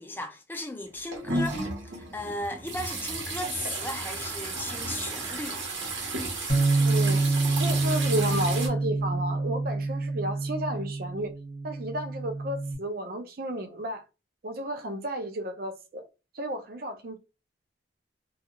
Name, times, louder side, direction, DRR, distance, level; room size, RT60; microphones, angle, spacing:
voice 1, 0.0-1.6 2.0-5.6, left 1 dB, 10° left, 0.4 m, -36 dB
sound 1, 0.9-8.7, right 2 dB, 90° right, 0.9 m, -33 dB
Bass guitar, 6.5-12.7, right 3 dB, 50° left, 1.0 m, -27 dB
voice 2, 6.8-7.2 7.6-11.3 11.6-14.0 14.4-16.1 16.3-17.2, right 1 dB, 50° right, 0.5 m, -32 dB
2.4 x 2.4 x 2.8 m
head